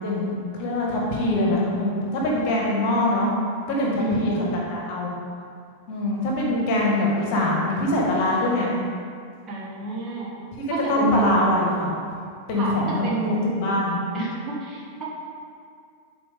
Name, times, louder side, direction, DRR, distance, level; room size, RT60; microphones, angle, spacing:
voice 1, 0.0-3.3 3.7-4.4 4.7-5.1 5.9-8.7 10.9-11.9 12.5-13.0 13.3-14.0, left 1 dB, 45° left, -3 dB, 1.6 m, -23 dB
voice 2, 4.0-4.6 9.5-10.4 10.7-11.4 12.5-13.5 14.1-15.0, right 2 dB, 25° right, -5 dB, 1.7 m, -28 dB
11.0 x 4.7 x 3.6 m, 2.2 s
figure-of-eight pair, 90°, 0 cm